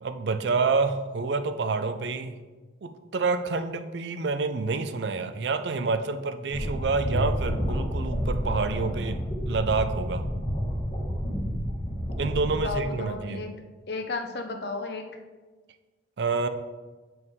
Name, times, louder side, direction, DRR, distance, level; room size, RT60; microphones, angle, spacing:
voice 1, 0.0-2.3 2.8-10.3 12.2-13.5 16.2-16.5, right 4 dB, 70° right, 9 dB, 0.5 m, -28 dB
sound 1, 6.5-12.7, equal, 35° left, 2.0 m, -29 dB
voice 2, 12.4-13.5 13.9-15.1, left 3 dB, 65° left, 5 dB, 0.8 m, -33 dB
8.0 x 4.7 x 3.6 m, 1.3 s
head